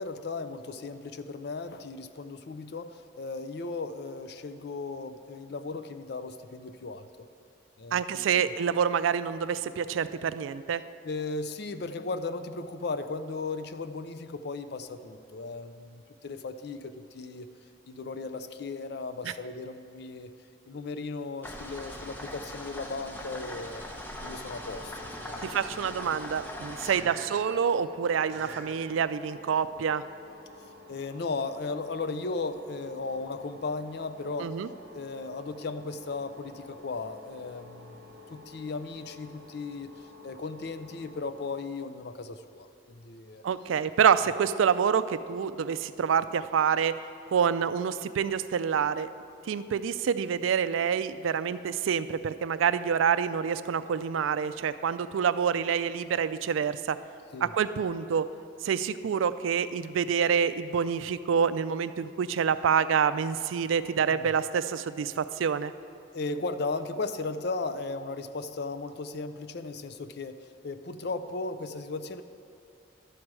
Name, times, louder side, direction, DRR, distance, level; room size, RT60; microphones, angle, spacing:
voice 1, 0.0-7.1 7.8-8.5 11.0-17.5 17.9-20.3 20.7-23.8 24.2-25.6 26.8-27.1 30.9-34.6 34.9-43.4 57.3-57.5 64.1-64.3 66.1-72.2, left 3 dB, 55° left, 11 dB, 0.4 m, -36 dB
voice 2, 7.9-10.8 19.2-19.3 25.4-30.0 34.4-34.7 43.4-47.0 47.3-49.1 49.5-57.0 57.4-58.3 58.6-65.7, right 7 dB, 90° right, 14 dB, 0.4 m, -27 dB
sound 1, 21.4-27.0, left 1 dB, 10° left, 0.7 m, -41 dB
sound 2, 24.2-41.6, left 1 dB, 50° right, 1.2 m, -49 dB
11.5 x 4.7 x 7.5 m, 2.5 s
head